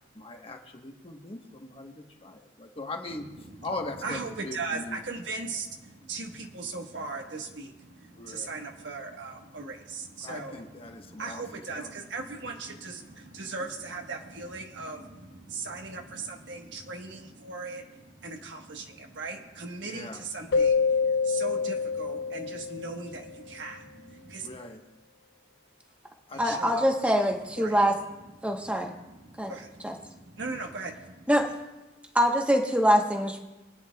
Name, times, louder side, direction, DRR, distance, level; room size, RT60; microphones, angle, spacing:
voice 1, 0.1-3.2 3.6-5.0 8.2-8.5 10.2-11.4 11.8-11.9 19.8-20.2 24.4-24.8 26.3-26.8, left 2 dB, 30° left, 3 dB, 1.2 m, -40 dB
voice 2, 3.1-24.6 26.3-26.8 27.6-27.8 28.4-31.3, right 3 dB, 80° right, 3 dB, 1.3 m, -39 dB
Keyboard (musical), 20.5-23.3, left 5 dB, 65° left, 0.4 m, -26 dB
voice 3, 26.4-27.9 28.4-28.9 29.4-29.5 29.8-29.9 31.3-31.5 32.1-33.4, equal, 5° right, 2 dB, 1.1 m, -24 dB
23.0 x 9.6 x 2.3 m, 1.0 s
head